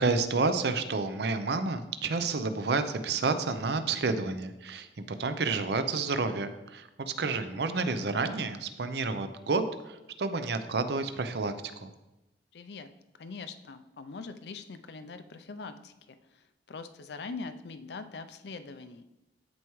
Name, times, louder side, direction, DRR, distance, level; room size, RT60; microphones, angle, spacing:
voice 1, 0.0-11.9, right 3 dB, 60° right, 10 dB, 0.6 m, -30 dB
voice 2, 12.5-12.9 13.2-19.0, left 4 dB, 65° left, 10 dB, 0.5 m, -43 dB
13.5 x 4.6 x 3.1 m, 0.97 s
head